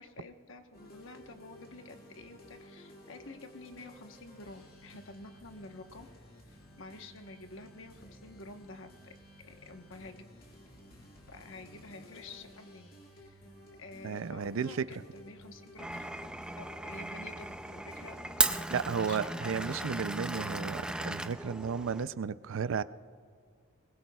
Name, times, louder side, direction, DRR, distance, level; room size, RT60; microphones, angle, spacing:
voice 1, 0.0-6.1 6.5-9.1 9.4-10.3 11.3-13.4 13.8-16.2 16.6-18.2 18.5-18.7 19.0-19.9, left 2 dB, 65° left, 6 dB, 1.1 m, -49 dB
sound 1, 0.7-19.7, equal, 45° left, 2.1 m, -55 dB
voice 2, 14.0-14.8 18.7-22.8, right 6 dB, 70° right, 15 dB, 0.4 m, -33 dB
Glass, 15.8-22.0, right 2 dB, 5° right, 0.3 m, -36 dB
21.5 x 20.5 x 2.3 m, 2.1 s
head